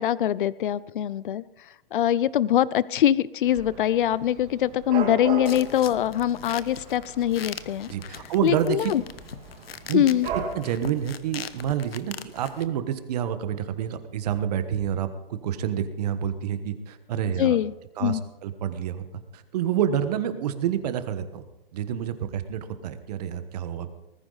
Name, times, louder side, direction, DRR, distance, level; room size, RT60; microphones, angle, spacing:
voice 1, 0.0-7.9 8.4-9.0 9.9-10.3 17.4-17.7 18.0-18.2, left 11 dB, 60° left, 20 dB, 0.7 m, -23 dB
Dog / Cat, 3.5-10.5, right 6 dB, 20° right, 2.0 m, -37 dB
sound 1, 5.5-12.7, left 8 dB, 85° left, 1.1 m, -41 dB
voice 2, 7.9-8.9 9.8-10.0 10.5-17.6 18.0-19.0 19.3-21.4 21.7-23.9, right 9 dB, 45° right, 10 dB, 1.4 m, -28 dB
19.5 x 14.5 x 4.1 m, 0.94 s
hypercardioid pair, 155°, 29 cm